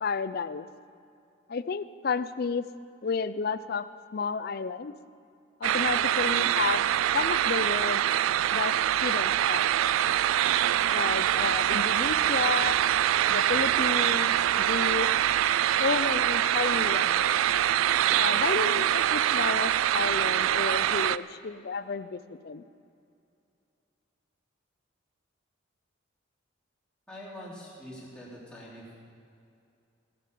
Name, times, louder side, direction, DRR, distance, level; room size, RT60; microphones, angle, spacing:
voice 1, 0.0-0.7 1.5-2.7 3.0-3.9 4.1-4.9 5.6-6.9 7.1-8.0 8.5-8.7 9.0-9.7 10.9-12.8 13.3-15.1 15.8-17.4 18.1-22.6, left 5 dB, 50° left, 14 dB, 0.4 m, -31 dB
sound 1, 5.6-21.2, right 11 dB, 85° right, 0.3 m, -24 dB
voice 2, 27.1-29.0, equal, 5° left, -7 dB, 3.3 m, -44 dB
17.0 x 8.5 x 6.8 m, 2.5 s
head